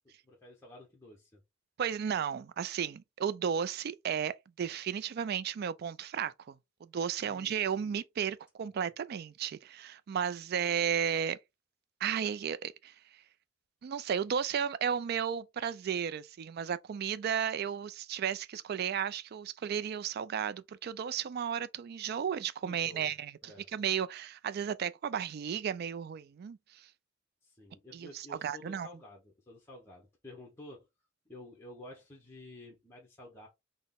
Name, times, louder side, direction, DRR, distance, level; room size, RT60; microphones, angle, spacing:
voice 1, 0.2-1.4 7.2-7.8 8.7-8.8 22.6-23.1 23.4-23.7 27.4-30.9 31.3-33.5, left 1 dB, 15° left, 0.9 m, -51 dB
voice 2, 1.8-6.5 6.8-11.4 12.0-12.9 13.8-26.6 27.9-28.9, right 8 dB, 55° right, 0.3 m, -34 dB
3.9 x 2.1 x 3.6 m
head